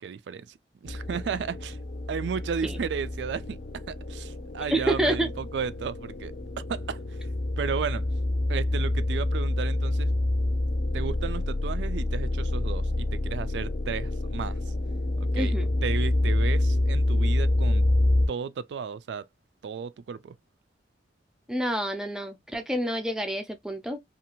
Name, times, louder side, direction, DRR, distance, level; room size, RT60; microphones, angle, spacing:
voice 1, 0.0-1.8 2.1-3.6 3.9-6.3 6.7-7.2 7.6-8.0 8.5-10.1 10.9-14.7 15.2-15.5 15.8-17.8 18.3-19.3 19.6-20.3, right 6 dB, 85° right, 0.3 m, -34 dB
sound 1, 0.9-18.3, left 1 dB, 50° left, 0.5 m, -27 dB
voice 2, 4.7-5.3 15.3-15.7 21.5-24.0, right 1 dB, 5° right, 0.4 m, -28 dB
2.6 x 2.4 x 2.8 m
head